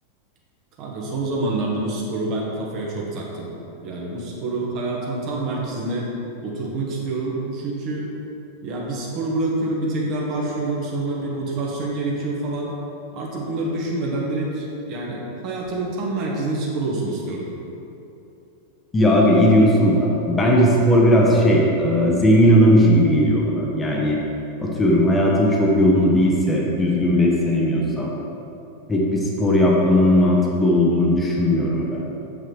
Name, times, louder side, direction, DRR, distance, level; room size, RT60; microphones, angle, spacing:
voice 1, 0.8-3.5 3.8-6.1 6.4-8.0 8.6-12.7 13.1-17.5, right 2 dB, 40° right, -3 dB, 1.3 m, -27 dB
voice 2, 18.9-24.2 24.6-28.2 28.9-32.0, equal, 15° left, -2 dB, 0.9 m, -17 dB
7.3 x 5.7 x 3.4 m, 2.9 s
figure-of-eight pair, 90°, 0 cm